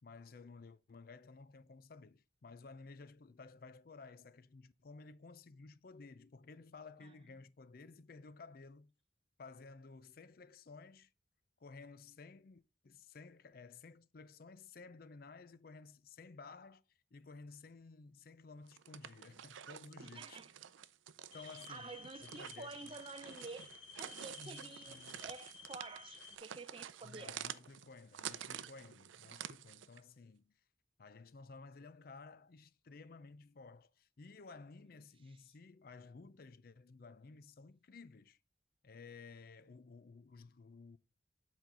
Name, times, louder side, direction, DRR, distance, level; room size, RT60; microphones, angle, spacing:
voice 1, 0.0-8.9 9.4-11.1 11.6-20.4 21.3-23.0 24.4-25.2 27.0-30.5 31.0-38.4 38.8-41.0, left 4 dB, 50° left, 0.5 m, -55 dB
sound 1, 18.7-30.0, right 9 dB, 80° right, 0.5 m, -49 dB
voice 2, 20.0-20.5 21.4-23.7 24.0-27.3, right 3 dB, 30° right, 0.5 m, -50 dB
sound 2, 21.3-26.4, left 6 dB, 75° left, 1.5 m, -55 dB
8.1 x 4.4 x 3.7 m
head